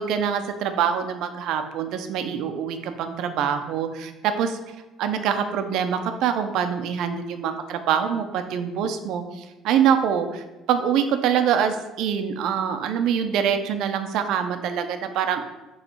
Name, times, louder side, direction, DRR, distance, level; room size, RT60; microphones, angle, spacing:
voice 1, 0.0-4.6 5.0-15.4, right 8 dB, 60° right, 8 dB, 0.6 m, -25 dB
7.9 x 3.2 x 4.5 m, 1.1 s
cardioid pair, 170°, 0 cm